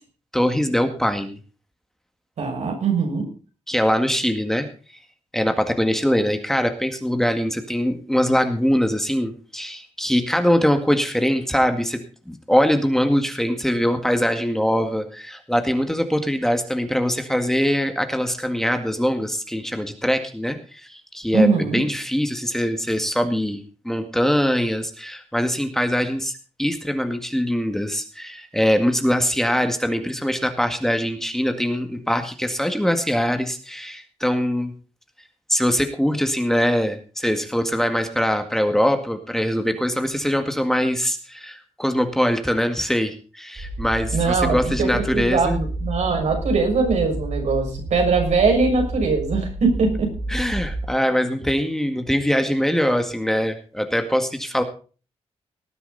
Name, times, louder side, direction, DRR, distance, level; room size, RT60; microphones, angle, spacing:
voice 1, 0.3-1.4 3.7-4.7 5.3-26.3 26.6-34.7 35.5-45.6 50.3-54.6, equal, 5° left, 6 dB, 1.9 m, -22 dB
voice 2, 2.4-3.3 21.3-21.8 44.1-50.1, right 4 dB, 80° right, 3 dB, 6.2 m, -21 dB
sound 1, 43.6-50.9, right 1 dB, 50° right, 5.0 m, -30 dB
19.0 x 10.0 x 4.1 m, 0.37 s
wide cardioid pair, 115°, 12 cm